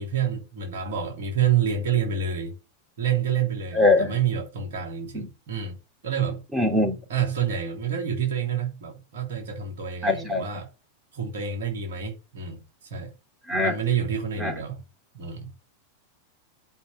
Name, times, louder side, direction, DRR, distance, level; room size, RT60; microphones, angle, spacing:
voice 1, 0.0-2.6 3.0-5.8 6.0-6.4 7.1-10.7 11.1-12.6 12.9-13.1 13.6-14.8 15.1-15.5, right 8 dB, 60° right, 3.1 m, -28 dB
voice 2, 3.8-4.1 5.1-5.3 6.5-7.0 10.0-10.4 13.5-13.7 14.4-14.5, left 2 dB, 15° right, 3.6 m, -22 dB
10.5 x 5.5 x 7.0 m
figure-of-eight pair, 90°, 0 cm